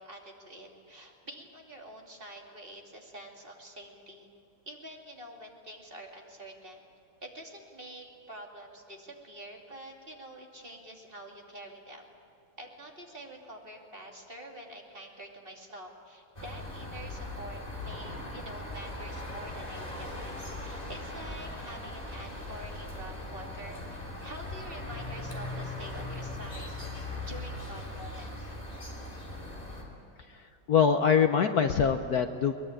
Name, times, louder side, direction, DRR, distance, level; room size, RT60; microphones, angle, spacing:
voice 1, 0.0-4.3 4.7-6.9 7.2-12.1 12.6-26.9 27.3-28.6, right 1 dB, 25° right, 0 dB, 2.8 m, -47 dB
sound 1, 16.3-29.8, left 2 dB, 15° left, 3.5 m, -39 dB
voice 2, 30.7-32.5, left 7 dB, 60° left, 7 dB, 1.1 m, -23 dB
22.5 x 21.0 x 9.0 m, 2.6 s
omnidirectional pair, 2.3 m